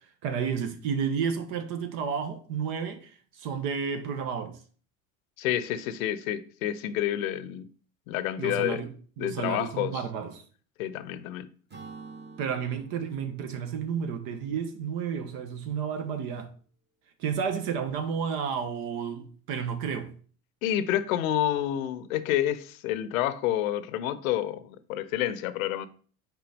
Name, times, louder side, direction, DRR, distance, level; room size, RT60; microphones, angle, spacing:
voice 1, 0.2-4.6 8.4-8.9 9.2-10.4 12.4-16.5 17.2-20.1, right 7 dB, 60° right, 1.0 m, -31 dB
voice 2, 5.4-7.7 8.1-8.8 9.2-10.0 10.8-11.5 20.6-25.9, left 12 dB, 75° left, 0.7 m, -29 dB
Acoustic guitar / Strum, 11.7-15.3, right 4 dB, 25° right, 1.3 m, -49 dB
6.0 x 4.6 x 3.4 m
hypercardioid pair, 75°, 41 cm